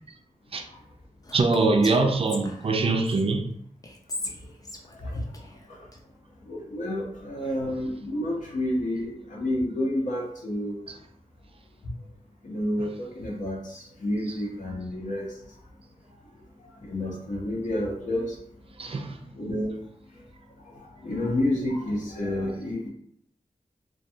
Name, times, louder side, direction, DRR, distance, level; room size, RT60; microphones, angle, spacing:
Whispering, 1.2-3.2 3.8-6.0, left 2 dB, 25° left, 0.4 m, -39 dB
voice 1, 1.3-3.5 10.9-11.0 12.8-12.9 14.3-14.4 18.8-19.2, right 3 dB, 45° right, 0.4 m, -23 dB
voice 2, 6.5-10.8 12.4-15.4 16.8-18.4 19.3-19.8 20.7-22.9, left 1 dB, 75° left, 0.7 m, -29 dB
2.2 x 2.2 x 2.7 m
wide cardioid pair, 70°, 13 cm